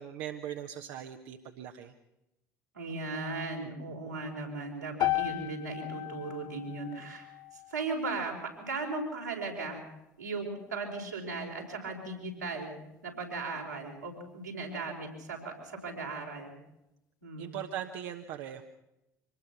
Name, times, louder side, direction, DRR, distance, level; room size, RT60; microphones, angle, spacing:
voice 1, 0.0-1.9 17.4-18.6, right 10 dB, 60° right, 5 dB, 1.3 m, -40 dB
voice 2, 2.7-7.3 7.7-9.8 10.2-12.8 13.0-16.5 17.2-17.5, right 3 dB, 80° right, -1 dB, 4.7 m, -37 dB
sound 1, 5.0-9.2, left 18 dB, 50° left, 0.7 m, -36 dB
25.5 x 19.5 x 6.0 m, 0.92 s
figure-of-eight pair, 60°, 9 cm